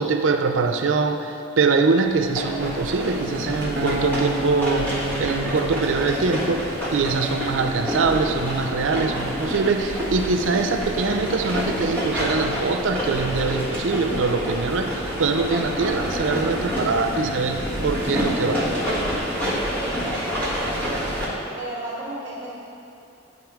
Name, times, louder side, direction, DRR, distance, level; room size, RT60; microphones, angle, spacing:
voice 1, 0.0-18.7, right 4 dB, 85° right, 6 dB, 0.5 m, -23 dB
sound 1, 2.0-21.3, equal, 10° left, 1.6 m, -28 dB
Acoustic guitar, 3.8-7.0, right 2 dB, 60° right, 1.0 m, -30 dB
voice 2, 19.7-21.3 21.5-22.5, right 1 dB, 25° right, -9 dB, 1.6 m, -34 dB
9.8 x 3.7 x 4.8 m, 2.7 s
head